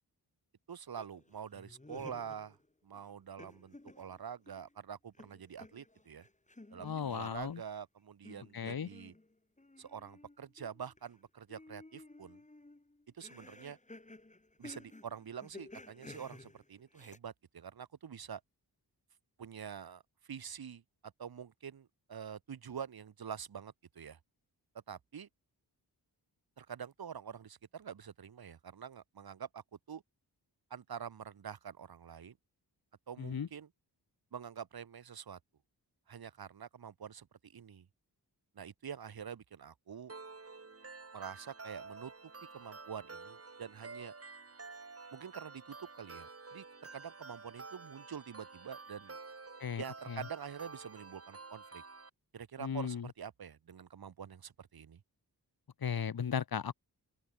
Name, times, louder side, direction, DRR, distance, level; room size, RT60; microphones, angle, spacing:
voice 1, 0.7-2.6 2.8-6.3 6.7-9.1 9.8-12.4 13.1-13.8 14.6-18.4 19.4-20.0 20.3-24.2 24.9-25.3 26.6-30.0 30.7-32.4 33.1-33.7 34.3-35.4 36.1-37.9 38.5-40.1 41.1-42.1 42.5-44.1 45.1-46.6 46.9-49.2 49.8-51.8 52.3-55.0, right 7 dB, 65° right, 1.3 m, -46 dB
sound 1, 1.0-2.7 2.9-4.7 5.1-7.6 8.2-11.2 11.5-17.2, left 2 dB, 20° left, 4.1 m, -55 dB
voice 2, 6.8-7.6 8.5-8.9 33.2-33.5 49.6-50.3 52.6-53.1 55.8-56.7, left 7 dB, 60° left, 1.5 m, -36 dB
sound 2, 40.1-52.1, right 4 dB, 35° right, 3.4 m, -50 dB
open air
wide cardioid pair, 115°, 40 cm